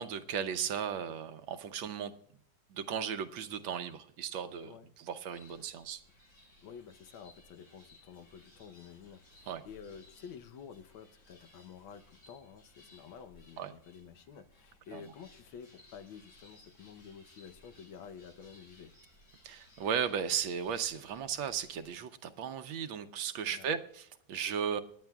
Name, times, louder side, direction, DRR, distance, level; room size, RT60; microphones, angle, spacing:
voice 1, 0.0-2.1 2.7-6.0 9.5-9.6 13.6-13.7 14.9-15.0 19.4-24.8, right 7 dB, 85° right, 9 dB, 1.6 m, -36 dB
sound 1, 5.3-21.9, left 1 dB, 70° left, 7.2 m, -61 dB
voice 2, 6.6-18.9 23.5-23.8, left 7 dB, 90° left, 8 dB, 1.7 m, -50 dB
27.5 x 9.8 x 2.3 m, 0.65 s
omnidirectional pair, 2.1 m